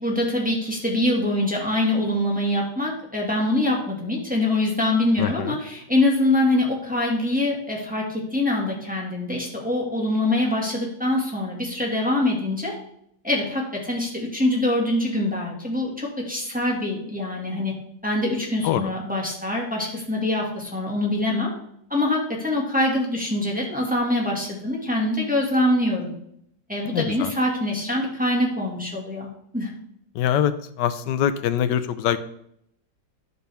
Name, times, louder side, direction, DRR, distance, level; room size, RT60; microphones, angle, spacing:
voice 1, 0.0-12.7 13.2-17.7 18.0-21.5 21.9-26.1 26.7-29.7, left 1 dB, 5° right, -3 dB, 1.8 m, -24 dB
voice 2, 5.2-5.6 18.6-18.9 26.9-27.3 30.1-32.2, left 10 dB, 75° left, 12 dB, 1.1 m, -24 dB
10.5 x 6.8 x 3.4 m, 0.71 s
omnidirectional pair, 2.1 m